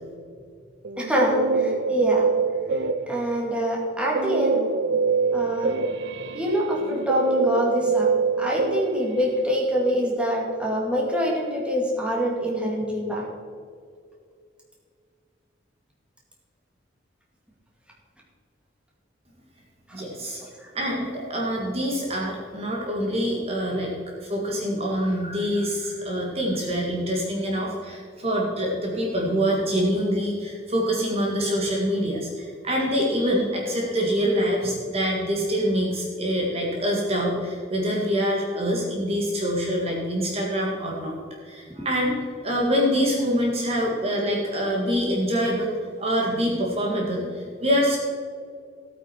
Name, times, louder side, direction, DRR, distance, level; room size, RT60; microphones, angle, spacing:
Guitar, 0.8-3.4 4.1-9.6, right 4 dB, 70° right, 0.5 m, -25 dB
voice 1, 1.0-2.3 2.7-4.6 5.3-5.7 6.3-8.1 8.4-13.3 20.6-20.7, equal, 5° right, -3 dB, 2.3 m, -25 dB
voice 2, 19.9-20.4 20.7-23.9 24.2-41.2 41.4-42.2 42.4-48.0, equal, 35° right, -2 dB, 1.9 m, -25 dB
16.0 x 8.8 x 4.6 m, 2.2 s
head